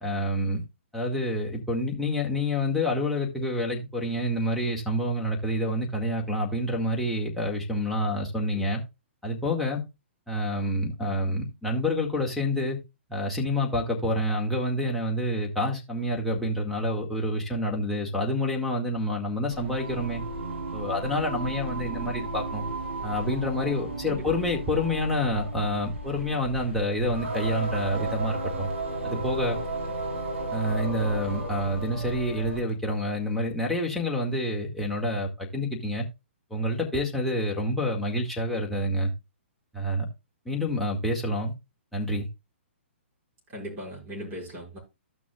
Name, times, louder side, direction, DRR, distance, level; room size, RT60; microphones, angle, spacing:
voice 1, 0.0-0.6 0.9-8.8 9.2-9.8 10.3-12.8 13.1-20.2 20.7-22.7 23.0-28.7 29.0-29.6 30.5-36.1 36.5-39.1 39.7-40.1 40.5-41.5 41.9-42.3, left 1 dB, ahead, 2.0 m, -28 dB
Singing, 19.5-32.7, right 2 dB, 75° right, 5.0 m, -34 dB
voice 2, 43.5-44.8, equal, 30° right, 5.7 m, -39 dB
14.5 x 6.1 x 2.4 m
hypercardioid pair, 125°, 7 cm